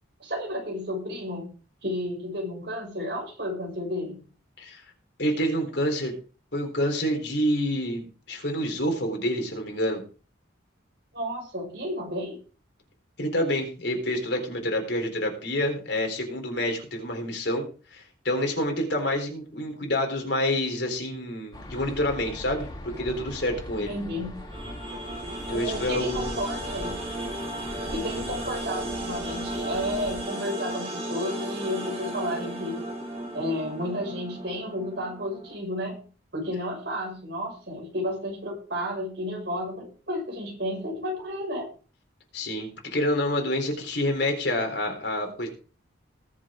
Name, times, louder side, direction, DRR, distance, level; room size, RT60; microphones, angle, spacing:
voice 1, 0.2-1.5 1.8-4.2 11.1-12.4 23.8-24.3 25.5-27.0 27.8-32.8 33.3-36.0 36.3-41.7, equal, 60° right, 0 dB, 6.4 m, -32 dB
voice 2, 5.2-6.1 6.5-10.0 13.2-23.9 25.5-26.3 42.3-45.5, left 1 dB, 60° left, 3 dB, 4.0 m, -28 dB
sound 1, 21.5-30.2, left 1 dB, 20° left, 3.4 m, -41 dB
sound 2, 24.5-35.6, right 1 dB, 30° right, 4.4 m, -35 dB
20.5 x 7.5 x 3.8 m, 0.38 s
head